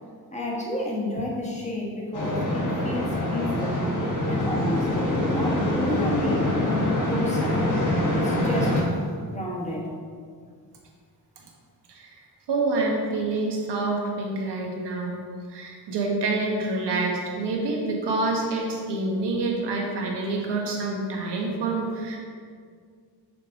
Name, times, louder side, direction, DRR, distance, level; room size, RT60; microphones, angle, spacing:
voice 1, 0.3-3.9 4.2-4.9 5.2-7.7 8.1-8.9 9.3-9.9, left 1 dB, 15° left, -3 dB, 1.2 m, -31 dB
sound 1, 2.1-8.8, left 1 dB, 50° left, 1.3 m, -24 dB
voice 2, 11.9-15.2 15.5-22.2, right 3 dB, 90° right, -1 dB, 1.3 m, -27 dB
6.6 x 5.1 x 3.7 m, 2.1 s
wide cardioid pair, 150°, 40 cm